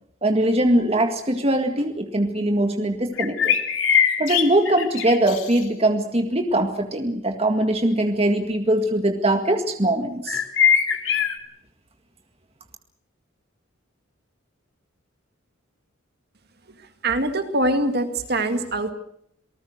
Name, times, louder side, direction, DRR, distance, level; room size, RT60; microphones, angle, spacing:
voice 1, 0.2-3.6 4.2-10.4, right 1 dB, 30° right, 5 dB, 1.9 m, -21 dB
sound 1, 3.2-5.6 10.3-11.4, left 7 dB, 70° left, 2.7 m, -21 dB
voice 2, 17.0-18.9, right 1 dB, 50° right, 7 dB, 2.2 m, -23 dB
28.0 x 19.0 x 6.6 m, 0.71 s
head